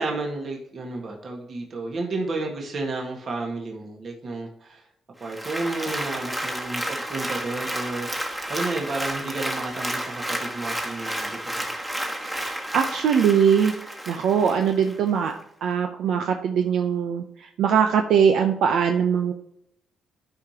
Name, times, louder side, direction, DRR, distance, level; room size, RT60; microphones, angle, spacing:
voice 1, 0.0-4.9 5.2-11.8, right 3 dB, 50° right, 0 dB, 1.7 m, -32 dB
Applause, 5.2-15.0 15.4-15.5, right 1 dB, 10° right, 1.4 m, -31 dB
voice 2, 12.2-13.7 14.1-15.3 15.6-19.3, right 7 dB, 75° right, 4 dB, 0.7 m, -21 dB
12.5 x 5.0 x 2.9 m, 0.75 s
cardioid pair, 90°, 0 cm